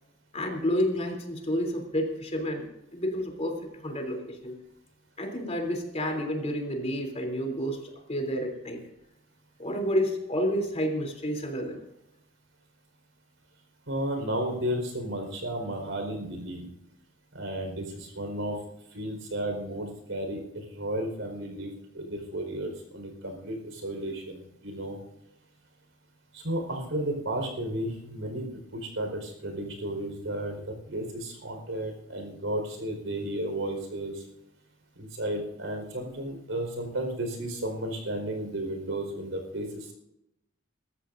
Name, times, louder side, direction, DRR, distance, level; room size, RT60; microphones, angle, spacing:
voice 1, 0.3-3.5 3.8-4.6 5.2-8.8 9.6-11.8, equal, 35° left, 2 dB, 3.3 m, -30 dB
voice 2, 13.9-16.7 17.3-18.6 18.9-25.0 26.3-28.5 28.7-34.2 35.0-39.9, right 1 dB, 75° right, 4 dB, 4.7 m, -33 dB
24.0 x 13.5 x 2.6 m, 0.85 s
head